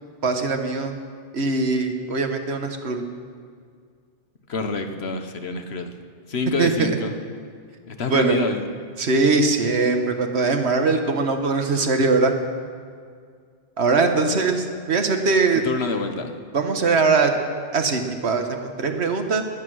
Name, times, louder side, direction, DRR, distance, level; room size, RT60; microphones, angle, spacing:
voice 1, 0.2-1.0 1.3-3.0 6.6-6.9 8.1-8.4 9.0-12.3 13.8-15.6 16.5-17.3 17.7-19.4, right 3 dB, 90° right, 5 dB, 1.6 m, -21 dB
voice 2, 4.5-5.9 6.3-7.1 7.9-8.6 14.2-14.6 15.5-16.4, left 3 dB, 80° left, 6 dB, 1.4 m, -27 dB
20.0 x 9.7 x 6.3 m, 2.1 s
omnidirectional pair, 1.1 m